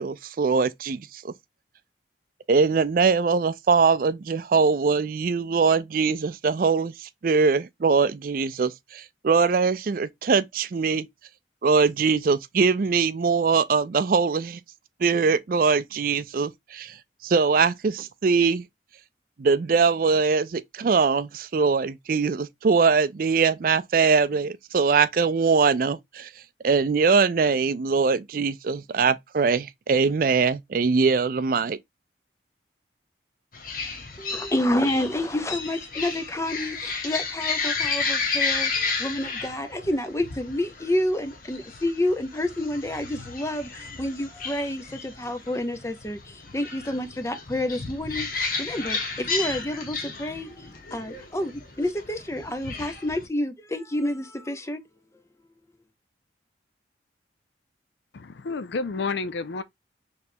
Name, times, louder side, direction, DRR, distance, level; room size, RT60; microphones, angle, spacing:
voice 1, 0.0-1.3 2.5-11.1 11.6-14.6 15.0-16.9 17.2-18.6 19.4-26.3 26.6-31.8, right 5 dB, 50° right, 0.4 m, -22 dB
sound 1, 33.5-53.3, left 4 dB, 50° left, 1.0 m, -32 dB
voice 2, 34.2-54.8, left 1 dB, 15° left, 0.5 m, -29 dB
voice 3, 58.1-59.6, left 4 dB, 75° left, 0.5 m, -30 dB
4.2 x 3.3 x 2.6 m
head